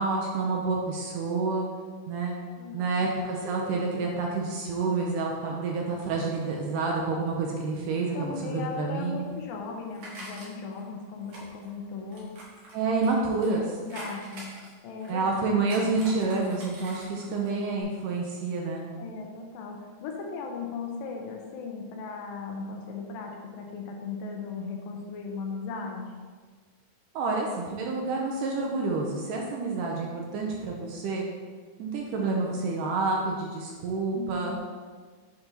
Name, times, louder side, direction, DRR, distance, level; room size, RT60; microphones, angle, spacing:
voice 1, 0.0-1.7 2.1-2.4 2.7-9.3 12.7-13.8 15.1-18.9 27.2-31.3 31.8-34.6, right 3 dB, 75° right, -1 dB, 2.1 m, -28 dB
voice 2, 2.6-3.0 8.1-12.3 13.8-14.5 14.8-15.2 19.0-26.1 34.1-34.6, left 4 dB, 80° left, 1 dB, 2.3 m, -37 dB
sound 1, 9.2-10.8 11.3-13.6 13.9-15.3 15.6-17.5 17.8-17.9, right 1 dB, 55° right, 2.2 m, -45 dB
8.0 x 2.9 x 5.2 m, 1.5 s
omnidirectional pair, 4.3 m